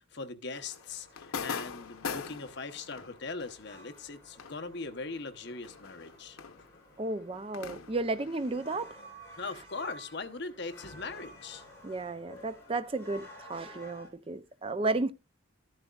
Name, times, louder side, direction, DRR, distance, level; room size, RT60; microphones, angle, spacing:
voice 1, 0.0-6.4 9.4-11.6, left 3 dB, 55° left, 0.9 m, -40 dB
sound 1, 0.5-9.5 9.7-13.3, left 6 dB, 90° left, 0.8 m, -45 dB
sound 2, 0.8-14.1, equal, 10° left, 3.8 m, -53 dB
voice 2, 7.0-9.0 11.8-15.1, right 2 dB, 25° right, 0.5 m, -33 dB
13.5 x 10.5 x 2.4 m
head